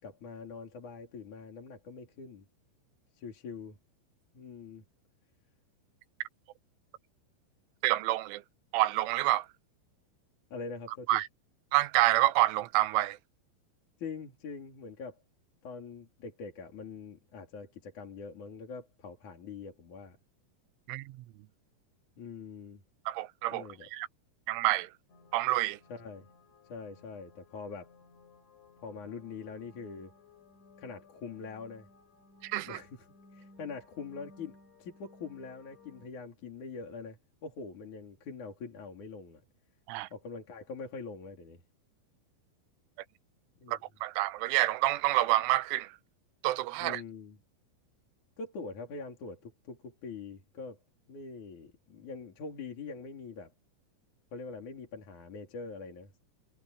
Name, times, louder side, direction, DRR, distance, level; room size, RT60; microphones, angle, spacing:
voice 1, 0.0-2.5 3.2-3.8 4.3-4.8 10.5-11.2 14.0-15.2 15.6-20.2 22.2-22.8 23.5-23.9 25.9-26.3 26.7-27.9 28.8-30.1 30.8-31.9 32.6-33.0 33.3-39.4 40.1-41.6 43.6-43.8 46.8-47.4 48.4-50.8 51.1-53.5 54.3-56.2, left 4 dB, 45° left, 4.5 m, -43 dB
voice 2, 7.8-8.4 8.7-9.5 11.1-11.3 11.7-13.2 20.9-21.2 23.1-24.1 24.5-24.9 25.3-25.8 32.4-32.8 39.9-40.1 43.7-46.0 46.4-47.0, right 16 dB, 90° right, 3.4 m, -28 dB
sound 1, 25.1-36.1, left 3 dB, 70° left, 10.0 m, -59 dB
omnidirectional pair, 5.5 m